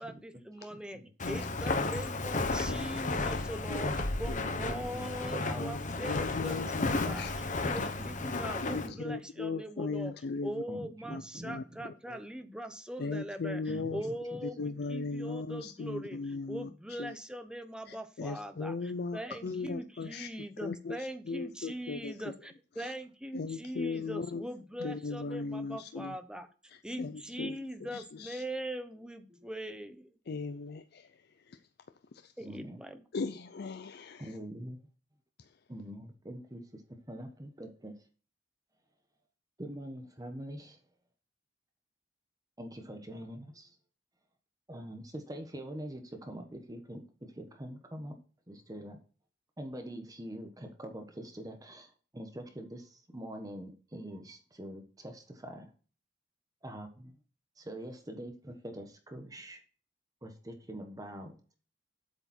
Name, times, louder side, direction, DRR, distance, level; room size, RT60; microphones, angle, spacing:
voice 1, 0.0-10.1 10.4-26.5 26.8-30.1 32.4-33.0, right 1 dB, 5° right, 0.9 m, -41 dB
voice 2, 0.6-1.1 4.9-5.7 8.0-8.1 8.7-9.2 10.7-11.8 13.7-14.4 29.3-29.5 32.4-32.8 34.2-34.9 35.7-36.8 37.1-37.9 39.6-40.8 42.6-43.8 44.7-48.2 48.5-49.0 49.6-55.7 56.6-57.2 57.6-59.6 60.2-61.6, right 1 dB, 20° right, 1.2 m, -44 dB
Walk footsteps, 1.2-8.9, left 3 dB, 45° left, 1.0 m, -33 dB
voice 3, 2.5-2.9 3.4-3.8 5.6-5.8 6.1-7.9 8.3-8.4 8.7-10.6 11.1-11.6 12.1-12.2 13.0-14.0 14.4-16.7 17.0-17.1 17.9-20.3 20.6-22.3 22.8-22.9 23.3-24.4 24.8-26.2 26.7-27.6 27.9-28.4 30.3-31.2 31.5-31.6 32.2-32.3 33.1-34.4, left 4 dB, 60° left, 0.5 m, -38 dB
8.1 x 6.9 x 4.3 m
head